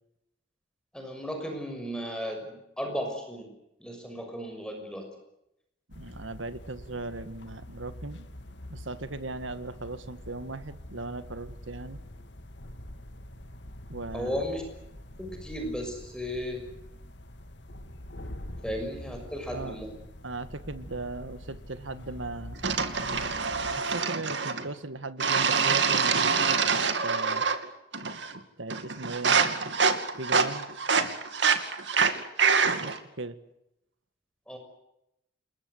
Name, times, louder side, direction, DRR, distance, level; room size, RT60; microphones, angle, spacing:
voice 1, 0.9-3.5 3.8-5.1 14.1-14.6 15.2-16.7 18.6-20.0 34.5-34.6, equal, 5° left, 3 dB, 6.1 m, -35 dB
sound 1, 5.9-23.8, left 1 dB, 70° left, 2.1 m, -45 dB
voice 2, 6.0-8.3 8.7-12.0 13.9-14.4 19.5-19.8 20.2-22.6 23.8-27.5 28.6-29.4 30.2-30.7 33.2-33.4, right 2 dB, 90° right, 12 dB, 1.9 m, -38 dB
sound 2, 22.6-24.7 25.2-27.7 27.9-28.4 28.7-33.0, right 5 dB, 70° right, 2.5 m, -25 dB
28.5 x 22.0 x 8.1 m, 0.83 s
head